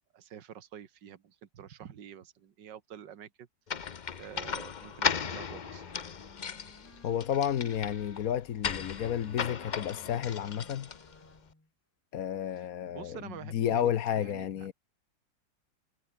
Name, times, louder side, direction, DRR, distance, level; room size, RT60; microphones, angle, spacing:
voice 1, 0.1-3.5 4.2-5.9 12.6-14.7, right 9 dB, 70° right, 2.1 m, -48 dB
sound 1, 3.7-11.3, left 7 dB, 70° left, 0.4 m, -36 dB
Wind instrument woodwind instrument, 5.0-8.3 8.9-11.7, left 1 dB, 10° left, 1.7 m, -56 dB
voice 2, 7.0-10.9 12.1-14.7, left 9 dB, 55° left, 1.2 m, -31 dB
omnidirectional pair, 2.0 m